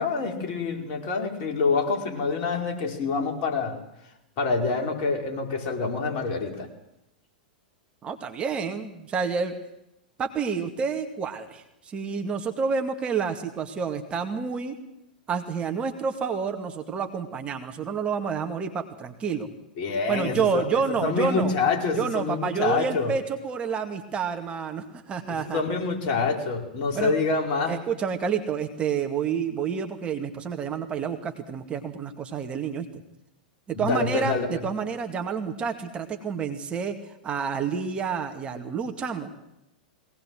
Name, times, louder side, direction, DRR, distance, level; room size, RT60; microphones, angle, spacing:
voice 1, 0.0-3.8 4.4-6.7 19.8-20.6 21.0-23.1 25.3-27.8 33.7-34.5, left 4 dB, 45° left, 2 dB, 5.1 m, -26 dB
voice 2, 8.0-9.5 10.2-14.7 15.3-19.5 20.1-21.5 21.9-25.6 26.9-27.1 27.7-32.9 33.7-37.0 37.2-39.3, right 6 dB, 25° right, 5 dB, 2.1 m, -29 dB
22.0 x 18.5 x 7.8 m, 0.84 s
figure-of-eight pair, 95°, 5 cm